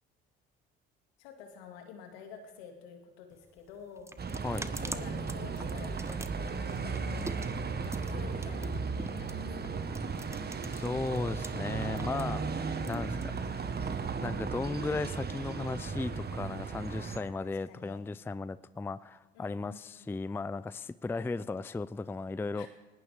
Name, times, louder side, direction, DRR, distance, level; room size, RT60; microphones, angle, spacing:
voice 1, 1.2-7.5 7.8-9.8 16.9-18.0 19.3-20.2 22.5-22.7, left 6 dB, 80° left, 4 dB, 2.4 m, -50 dB
sound 1, 3.3-11.5 11.8-13.7, right 2 dB, 10° right, 0.9 m, -44 dB
Bus, 4.2-17.2, right 5 dB, 35° right, 1.4 m, -35 dB
voice 2, 10.7-12.4 12.9-13.3 14.2-22.7, left 3 dB, 10° left, 17 dB, 0.4 m, -36 dB
19.5 x 18.0 x 3.6 m, 1.2 s
hypercardioid pair, 60°, 30 cm